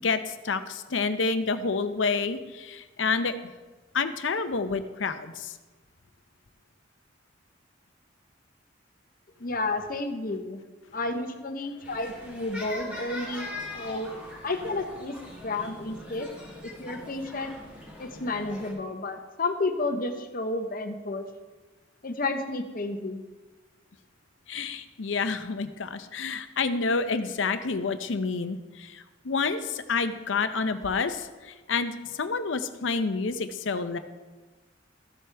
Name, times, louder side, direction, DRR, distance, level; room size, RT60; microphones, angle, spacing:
voice 1, 0.0-3.3 3.9-5.5 24.5-34.0, left 4 dB, 90° left, 10 dB, 0.7 m, -29 dB
voice 2, 9.4-10.6 10.9-14.1 14.4-15.2 15.4-16.3 16.6-17.6 18.0-21.3 22.0-23.2, left 2 dB, 50° left, 6 dB, 0.9 m, -31 dB
sound 1, 11.8-18.7, left 2 dB, 10° right, 2.8 m, -41 dB
14.0 x 7.8 x 3.4 m, 1.2 s
head